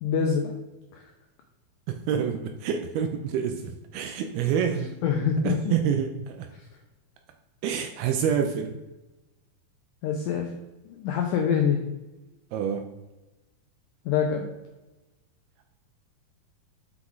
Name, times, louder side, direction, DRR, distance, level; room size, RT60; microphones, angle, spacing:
voice 1, 0.0-0.5 0.9-1.0 5.0-5.7 10.0-10.5 10.9-11.8 14.1-14.5, left 7 dB, 85° left, 3 dB, 1.9 m, -25 dB
voice 2, 1.9-5.0 5.4-6.5 7.6-8.8 12.5-12.9, right 8 dB, 80° right, 5 dB, 2.5 m, -27 dB
6.2 x 5.8 x 3.9 m, 1.0 s
omnidirectional pair, 4.5 m